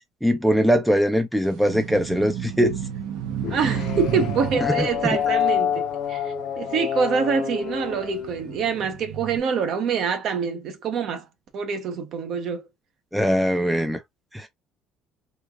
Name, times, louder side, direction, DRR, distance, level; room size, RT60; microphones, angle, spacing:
voice 1, 0.2-2.8 4.6-4.9 13.1-14.0 14.3-14.5, equal, ahead, 0.4 m, -21 dB
sound 1, 1.4-7.0 7.5-9.4, right 9 dB, 85° right, 0.8 m, -32 dB
sound 2, 3.4-9.0, left 9 dB, 50° left, 0.6 m, -28 dB
voice 2, 3.5-11.2 11.5-12.6, right 6 dB, 45° right, 0.7 m, -26 dB
3.2 x 2.3 x 3.5 m
cardioid pair, 170°, 0 cm